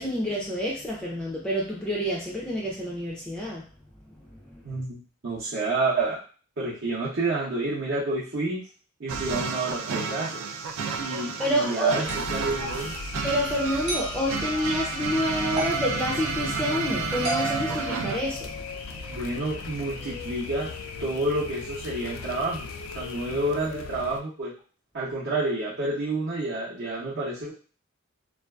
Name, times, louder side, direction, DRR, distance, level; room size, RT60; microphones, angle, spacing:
voice 1, 0.0-3.7 4.5-4.8 11.4-12.1 12.6-12.7 13.2-18.5, equal, 5° left, -4 dB, 0.4 m, -28 dB
voice 2, 4.6-6.2 6.6-8.6 9.0-10.4 11.0-12.9 19.1-20.7 21.0-22.7 22.9-24.5 24.9-27.5, right 2 dB, 60° right, -9 dB, 0.7 m, -29 dB
sound 1, 9.1-18.2, right 5 dB, 85° right, 0.3 m, -31 dB
sound 2, 12.0-24.2, left 4 dB, 90° left, 0.3 m, -38 dB
sound 3, 12.1-12.3 13.9-14.2 15.6-15.9 17.2-18.7, right 3 dB, 30° right, 1.0 m, -33 dB
2.5 x 2.3 x 2.2 m, 0.39 s
head